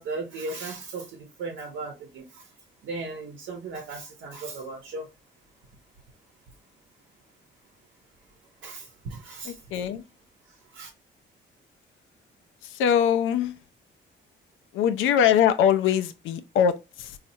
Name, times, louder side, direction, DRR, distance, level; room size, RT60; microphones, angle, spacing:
voice 1, 0.0-2.5 2.8-5.1 8.6-9.6 10.7-10.9, right 3 dB, 80° right, 0.8 m, -36 dB
voice 2, 9.4-10.0 12.6-13.5 14.7-17.2, left 8 dB, 85° left, 0.5 m, -22 dB
4.1 x 2.4 x 2.7 m
cardioid pair, 90°, 20 cm